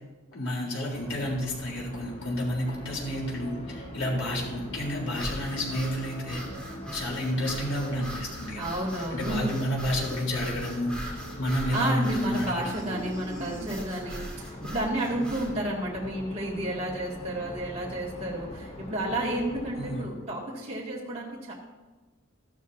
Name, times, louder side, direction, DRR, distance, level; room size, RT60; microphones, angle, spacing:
voice 1, 0.3-6.4 6.9-8.6 9.1-13.0 19.8-20.1, equal, 85° left, -3 dB, 3.7 m, -30 dB
sound 1, 0.9-20.1, left 1 dB, 30° left, 1.1 m, -43 dB
sound 2, 2.6-8.1, equal, 60° left, 3.9 m, -47 dB
sound 3, 5.1-15.5, right 1 dB, 5° left, 2.4 m, -40 dB
voice 2, 8.6-9.5 11.7-21.5, right 1 dB, 30° right, -5 dB, 2.2 m, -31 dB
14.0 x 12.0 x 2.7 m, 1.2 s
head